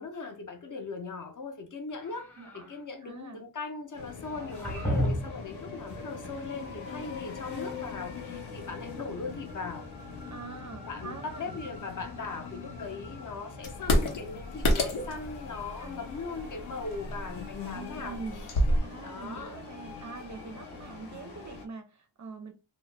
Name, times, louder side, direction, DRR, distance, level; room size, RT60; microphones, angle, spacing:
voice 1, 0.0-9.9 10.8-18.5 19.0-19.6, left 4 dB, 40° left, 0.6 m, -39 dB
sound 1, 1.9-2.8 4.2-5.5, equal, 5° left, 0.7 m, -32 dB
voice 2, 2.4-2.7 3.0-3.4 10.3-11.6 15.8-16.2 17.7-18.4 18.8-22.5, right 4 dB, 40° right, 0.4 m, -43 dB
sound 2, 3.9-21.7, left 4 dB, 60° left, 0.9 m, -43 dB
sound 3, 13.6-18.8, left 1 dB, 85° left, 0.9 m, -29 dB
2.7 x 2.1 x 3.2 m
wide cardioid pair, 160°, 47 cm